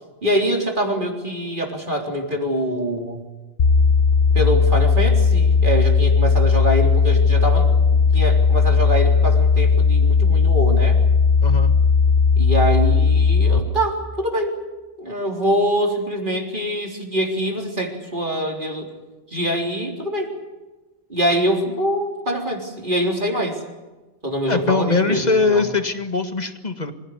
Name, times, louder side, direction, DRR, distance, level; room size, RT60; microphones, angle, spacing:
voice 1, 0.2-3.2 4.3-11.0 12.4-14.6 15.0-18.9 19.3-20.3 21.1-23.6 24.2-25.6, equal, 50° right, 1 dB, 4.0 m, -24 dB
sound 1, 3.6-13.6, left 5 dB, 65° left, 1.5 m, -16 dB
voice 2, 11.4-11.7 24.5-26.9, left 4 dB, 40° left, 7 dB, 2.0 m, -21 dB
26.0 x 16.5 x 9.7 m, 1.2 s
omnidirectional pair, 1.1 m